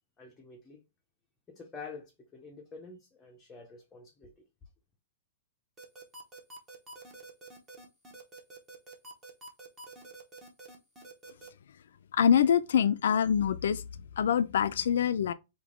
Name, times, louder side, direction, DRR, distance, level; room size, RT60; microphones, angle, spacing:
voice 1, 0.2-0.8 1.5-4.4, left 4 dB, 10° left, 0.6 m, -48 dB
sound 1, 5.8-11.5, right 2 dB, 15° right, 1.0 m, -48 dB
voice 2, 12.1-13.8 14.2-15.3, left 8 dB, 75° left, 0.4 m, -25 dB
3.6 x 2.8 x 3.6 m
hypercardioid pair, 160°, 0 cm